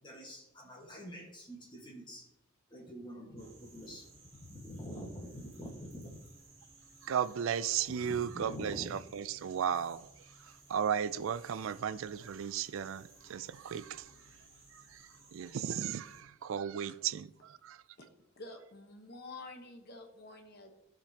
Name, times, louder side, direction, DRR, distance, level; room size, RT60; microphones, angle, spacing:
voice 1, 0.0-2.3 2.7-6.2 7.9-8.9, equal, 20° left, 1.5 m, -46 dB
sound 1, 3.4-16.2, right 3 dB, 30° right, 2.4 m, -59 dB
voice 2, 7.0-10.1 10.7-14.0 15.3-17.8, right 8 dB, 70° right, 0.4 m, -35 dB
voice 3, 18.4-20.7, left 2 dB, 50° left, 1.1 m, -49 dB
14.5 x 5.1 x 2.9 m
head